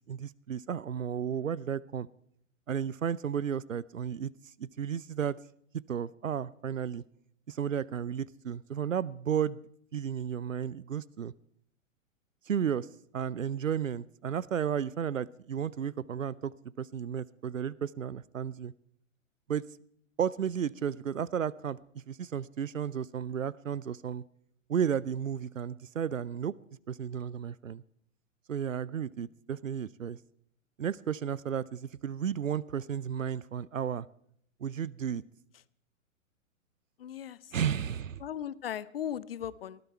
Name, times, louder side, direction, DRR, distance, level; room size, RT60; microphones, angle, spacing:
voice 1, 0.0-2.1 2.7-4.3 4.6-5.4 5.9-7.0 7.5-9.6 9.9-11.3 12.5-12.9 13.1-18.7 19.5-19.6 20.2-21.8 22.1-24.2 24.7-26.5 26.9-27.8 28.5-30.2 30.8-34.1 34.6-35.2 37.5-38.2, right 8 dB, 75° right, 23 dB, 0.7 m, -33 dB
voice 2, 37.0-37.5 38.2-39.8, left 10 dB, 45° left, 20 dB, 0.6 m, -37 dB
19.5 x 13.5 x 4.4 m, 0.68 s
figure-of-eight pair, 115°, 40 cm